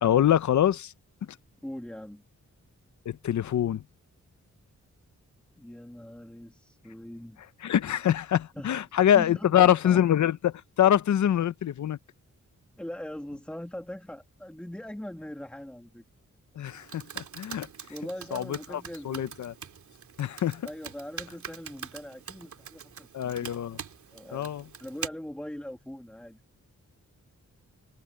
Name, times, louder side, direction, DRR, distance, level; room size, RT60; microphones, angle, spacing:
voice 1, 0.0-0.9 3.1-3.8 7.6-12.0 16.6-17.7 18.3-19.5 20.2-20.7 23.1-23.8 24.3-24.6, left 10 dB, 70° left, 0.7 m, -25 dB
voice 2, 1.6-2.2 5.6-7.4 8.6-8.8 9.1-10.0 12.8-16.0 17.9-19.3 20.6-23.4 24.1-24.5 24.8-26.6, left 1 dB, 5° left, 1.6 m, -41 dB
Computer keyboard, 16.7-25.1, right 7 dB, 75° right, 2.7 m, -43 dB
wide cardioid pair, 180°, 30 cm